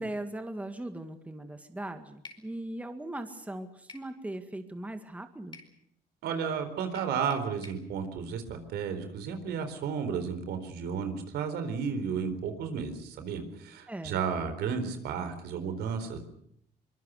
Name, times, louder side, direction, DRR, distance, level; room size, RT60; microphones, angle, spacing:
voice 1, 0.0-5.6 13.9-14.2, right 1 dB, 10° right, 7 dB, 2.0 m, -39 dB
sound 1, 2.2-2.5 3.9-4.1 5.5-5.7 6.9-7.8, left 4 dB, 25° left, 4.7 m, -49 dB
voice 2, 6.2-16.2, right 6 dB, 75° right, 9 dB, 4.2 m, -33 dB
24.0 x 22.5 x 6.7 m, 0.70 s
cardioid pair, 110°, 17 cm